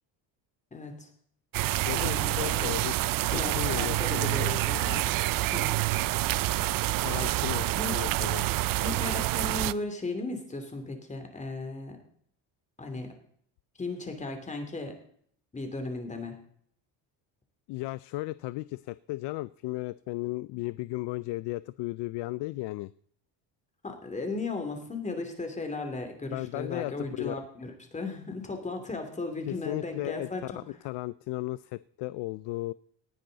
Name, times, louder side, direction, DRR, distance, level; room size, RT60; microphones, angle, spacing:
voice 1, 0.7-1.1 1.9-2.7 3.3-4.9 5.5-5.8 7.8-7.9 8.8-12.0 12.8-13.1 13.8-14.9 15.5-16.4 23.8-30.6, left 3 dB, 15° left, 5 dB, 2.7 m, -36 dB
sound 1, 1.5-9.7, right 17 dB, 50° right, 0.5 m, -27 dB
voice 2, 1.9-5.0 7.0-8.5 17.7-22.9 26.3-27.3 29.5-32.7, left 19 dB, 65° left, 17 dB, 0.5 m, -35 dB
18.5 x 10.5 x 4.0 m, 0.62 s
cardioid pair, 150°, 44 cm